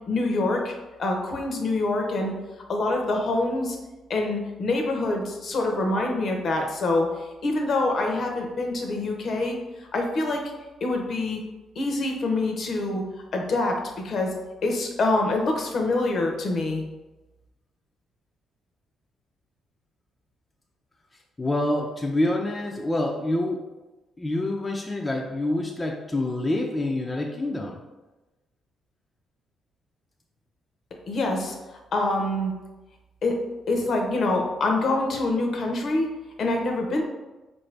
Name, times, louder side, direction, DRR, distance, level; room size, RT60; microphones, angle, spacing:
voice 1, 0.1-0.7 1.0-2.3 2.7-3.8 4.1-7.1 7.4-10.4 10.8-11.4 11.8-13.0 13.3-14.3 14.6-16.8 31.1-31.5 31.9-32.5 33.2-33.4 33.7-36.1 36.4-37.0, left 2 dB, 55° left, 2 dB, 0.7 m, -25 dB
voice 2, 21.4-23.6 24.2-27.8, left 1 dB, 20° left, 0 dB, 0.4 m, -26 dB
4.1 x 2.6 x 3.2 m, 1.1 s
cardioid pair, 90°, 0 cm